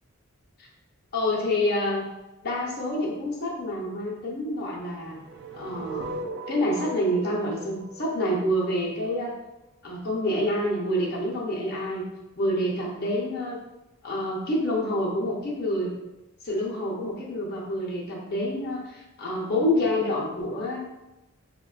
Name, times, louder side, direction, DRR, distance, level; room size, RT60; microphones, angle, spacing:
voice 1, 1.1-2.0 2.4-5.2 5.5-6.1 6.5-9.3 9.8-12.0 12.4-13.6 14.0-15.9 16.4-20.8, left 1 dB, 45° left, -3 dB, 0.6 m, -27 dB
sound 1, 5.0-9.1, right 2 dB, 50° right, 0.3 m, -38 dB
4.8 x 2.1 x 2.3 m, 0.98 s
head